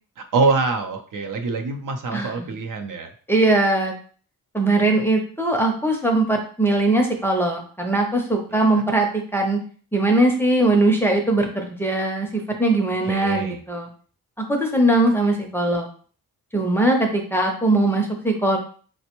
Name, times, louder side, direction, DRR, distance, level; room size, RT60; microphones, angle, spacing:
voice 1, 0.2-3.1 8.5-8.8 13.0-13.6, right 4 dB, 65° right, 4 dB, 0.6 m, -25 dB
voice 2, 2.1-2.5 3.3-3.9 4.5-9.6 9.9-13.9 14.5-15.9 16.5-18.6, right 2 dB, 5° left, 1 dB, 0.5 m, -20 dB
4.2 x 2.1 x 2.9 m, 0.43 s
wide cardioid pair, 125°, 35 cm